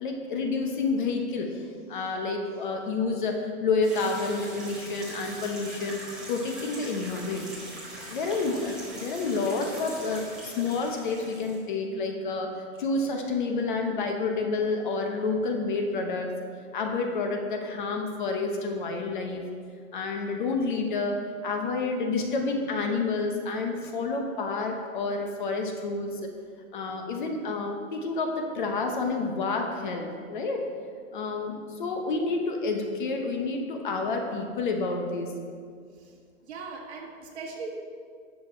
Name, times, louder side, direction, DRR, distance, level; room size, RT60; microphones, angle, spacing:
voice 1, 0.0-6.0 6.3-7.5 8.1-16.3 16.7-19.4 19.9-26.3 26.7-30.6 31.1-35.3, left 3 dB, 35° left, 3 dB, 0.9 m, -29 dB
sound 1, 3.8-11.6, right 1 dB, ahead, 0.7 m, -42 dB
voice 2, 36.4-37.7, right 4 dB, 55° right, -1 dB, 1.9 m, -39 dB
10.5 x 6.9 x 4.3 m, 2.1 s
hypercardioid pair, 170°, 40 cm